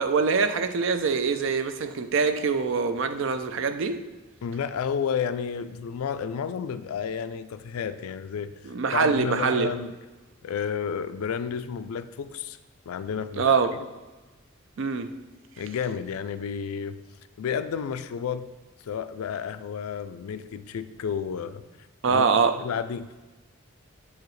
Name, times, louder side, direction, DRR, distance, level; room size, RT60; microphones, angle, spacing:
voice 1, 0.0-4.0 8.7-9.7 13.4-13.7 14.8-15.1 22.0-22.6, right 5 dB, 60° right, 9 dB, 0.4 m, -24 dB
voice 2, 4.4-8.5 8.9-9.9 10.4-12.6 12.9-13.5 15.6-17.0 17.4-18.5 18.8-21.6 22.1-22.3 22.6-23.1, left 7 dB, 85° left, 13 dB, 0.3 m, -31 dB
7.4 x 4.8 x 3.1 m, 1.2 s
head